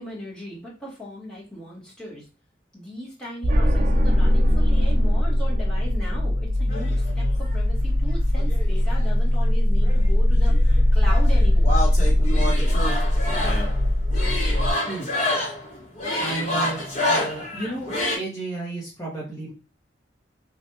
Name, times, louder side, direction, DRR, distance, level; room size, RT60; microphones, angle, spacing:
voice 1, 0.0-2.2 2.7-11.8, left 1 dB, 5° left, -6 dB, 1.2 m, -38 dB
sound 1, 3.4-14.7, left 1 dB, 45° right, 0.5 m, -20 dB
sound 2, 6.7-7.5 8.4-9.5 9.8-18.2, left 1 dB, 40° left, 1.2 m, -28 dB
voice 2, 16.2-16.8 17.1-17.9 18.2-19.5, right 2 dB, 20° left, -7 dB, 0.9 m, -32 dB
3.2 x 2.4 x 2.8 m, 0.31 s
head